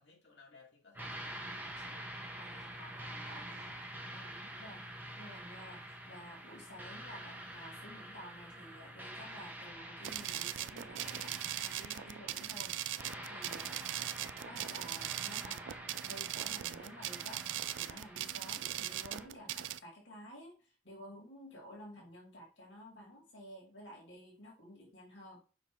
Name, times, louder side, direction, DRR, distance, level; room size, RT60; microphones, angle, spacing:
voice 1, 0.0-2.1 2.5-4.4 13.8-14.2, left 2 dB, 70° left, 1.9 m, -62 dB
sound 1, 0.9-19.3, right 1 dB, 10° right, 0.9 m, -47 dB
voice 2, 2.4-3.5 4.1-4.9 5.2-12.8 13.3-13.8 14.4-15.6 16.0-17.4 17.7-25.4, equal, 85° left, 2.4 m, -52 dB
sound 2, 10.0-19.8, right 13 dB, 85° right, 0.3 m, -40 dB
5.1 x 5.0 x 3.6 m
head